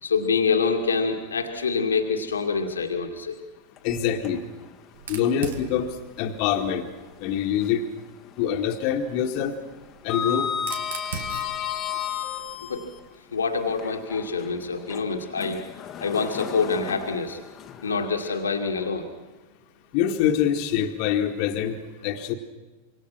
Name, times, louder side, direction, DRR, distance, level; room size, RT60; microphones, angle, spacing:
voice 1, 0.0-3.4 12.6-12.9 13.3-15.6 16.0-17.4 17.8-19.1, left 5 dB, 70° left, 4 dB, 2.3 m, -26 dB
voice 2, 3.8-4.4 5.1-5.9 6.2-6.8 7.2-7.8 8.4-9.5 10.0-10.5 19.9-21.8 22.0-22.3, left 9 dB, 45° left, 4 dB, 2.1 m, -24 dB
Sliding door, 3.8-4.7 5.1-5.2 6.9-8.0 8.3-8.6 8.9-13.0 13.7-18.9, left 9 dB, 30° left, 1.7 m, -34 dB
Fire, 4.9-7.7 8.9-13.1, right 5 dB, 60° right, 2.5 m, -41 dB
26.5 x 24.5 x 6.1 m, 1.2 s
figure-of-eight pair, 90°, 0 cm